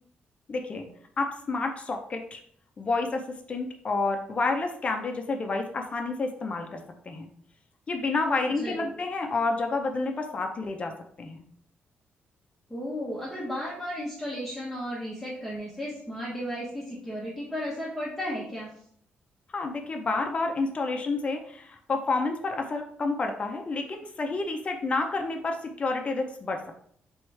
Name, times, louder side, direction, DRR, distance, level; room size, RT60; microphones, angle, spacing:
voice 1, 0.5-0.9 1.2-2.4 2.8-3.2 3.5-6.8 7.1-7.3 7.9-10.9 11.2-11.4 19.5-26.6, left 3 dB, 30° left, 4 dB, 0.6 m, -29 dB
voice 2, 8.5-8.9 12.7-18.7, equal, 5° left, -7 dB, 0.9 m, -34 dB
4.7 x 3.5 x 3.2 m, 0.63 s
wide cardioid pair, 160°, 4 cm